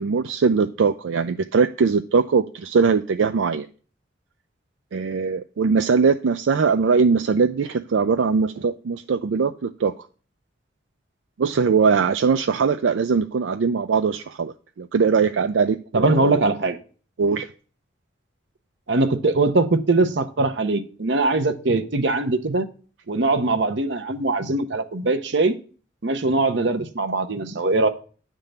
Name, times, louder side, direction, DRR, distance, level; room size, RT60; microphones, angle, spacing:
voice 1, 0.0-3.7 4.9-10.1 11.4-16.4 17.2-17.5, right 5 dB, 85° right, 10 dB, 0.4 m, -21 dB
voice 2, 15.9-16.8 18.9-22.7 23.1-25.5 26.0-27.9, right 2 dB, 70° right, 11 dB, 0.8 m, -21 dB
10.0 x 3.7 x 6.6 m, 0.40 s
head